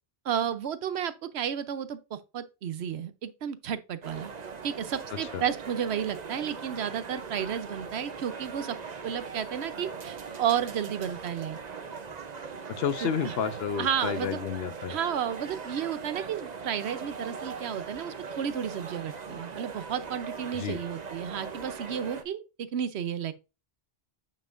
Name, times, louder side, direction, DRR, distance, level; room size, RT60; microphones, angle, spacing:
voice 1, 0.2-4.3 4.6-8.8 9.0-11.6 13.0-13.3 13.8-14.4 14.9-23.3, right 8 dB, 90° right, 1.0 m, -32 dB
sound 1, 4.0-22.2, right 5 dB, 45° right, 0.8 m, -40 dB
voice 2, 12.7-15.0 20.5-20.8, left 8 dB, 75° left, 1.0 m, -31 dB
8.9 x 5.5 x 2.5 m
omnidirectional pair, 1.1 m